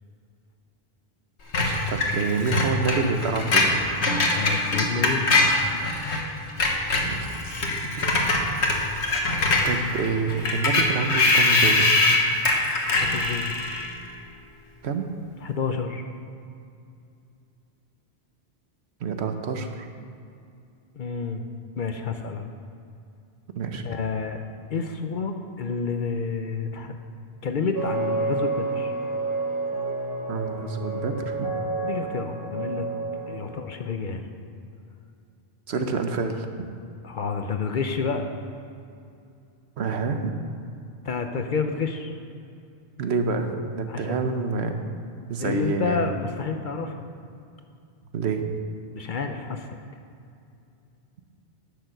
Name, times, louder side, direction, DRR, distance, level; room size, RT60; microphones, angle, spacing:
Screech, 1.5-6.2 6.5-14.0, left 2 dB, 75° left, 1.5 m, -23 dB
voice 1, 1.6-3.8 7.0-7.5 7.8-8.1 9.6-11.9 14.8-15.1 19.0-19.9 23.5-23.8 30.3-31.5 35.7-36.7 39.8-40.3 43.0-44.8 45.3-46.1 48.1-48.5, right 4 dB, 75° right, 6 dB, 1.1 m, -27 dB
voice 2, 4.3-5.4 13.0-13.5 15.4-16.0 20.9-21.5 21.8-22.5 23.8-24.4 24.7-27.1 27.4-28.9 31.8-32.9 33.3-34.3 35.8-35.9 37.0-38.3 41.0-42.1 43.9-44.3 45.4-47.1 48.9-49.7, left 5 dB, 50° left, 6 dB, 0.8 m, -29 dB
sound 1, 27.7-33.6, right 3 dB, 20° right, 1.2 m, -29 dB
10.5 x 6.8 x 6.6 m, 2.5 s
omnidirectional pair, 1.1 m